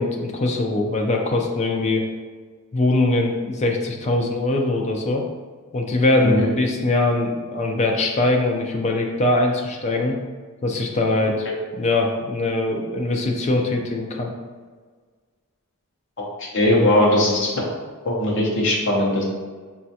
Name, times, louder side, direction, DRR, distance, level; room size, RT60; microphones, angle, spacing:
voice 1, 0.0-2.1 2.7-5.2 5.7-10.2 10.6-14.3, left 2 dB, 30° left, 1 dB, 0.4 m, -22 dB
voice 2, 16.4-17.5 18.0-19.2, left 1 dB, 55° left, -2 dB, 0.7 m, -19 dB
4.1 x 2.3 x 2.7 m, 1.5 s
head